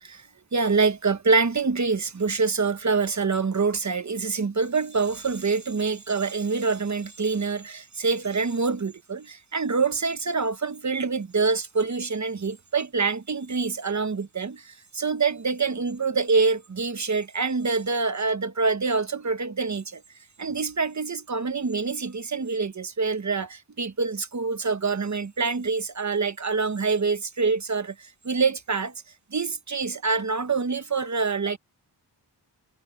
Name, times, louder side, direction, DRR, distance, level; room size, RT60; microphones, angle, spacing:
voice 1, 0.0-20.0 20.4-28.9 29.3-31.6, right 4 dB, 40° right, 1.2 m, -26 dB
wide cardioid pair, 100°, 43 cm